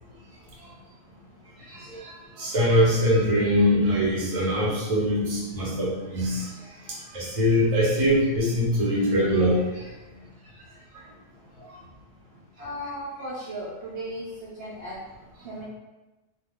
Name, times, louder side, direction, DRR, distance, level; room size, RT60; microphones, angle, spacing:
voice 1, 1.7-2.1 2.4-6.5 7.1-9.6, equal, 30° right, -6 dB, 0.7 m, -22 dB
voice 2, 12.6-15.0 15.4-15.7, equal, 65° right, -7 dB, 0.8 m, -36 dB
2.2 x 2.2 x 3.4 m, 1.1 s
omnidirectional pair, 1.5 m